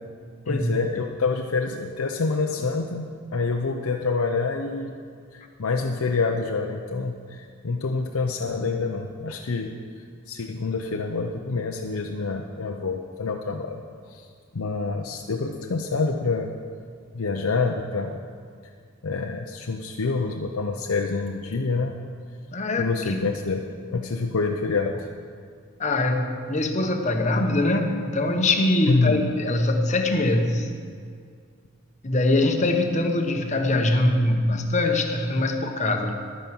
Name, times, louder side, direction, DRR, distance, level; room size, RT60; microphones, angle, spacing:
voice 1, 0.5-4.9 5.3-9.7 10.3-13.8 14.1-14.2 14.5-16.5 17.1-18.2 19.0-21.9 22.8-23.6 23.9-25.0 28.9-29.2, left 4 dB, 90° left, 3 dB, 0.7 m, -27 dB
voice 2, 22.5-22.9 23.2-23.3 25.8-30.7 32.0-36.1, left 2 dB, 35° left, 4 dB, 1.0 m, -23 dB
11.0 x 9.1 x 6.0 m, 2.1 s
head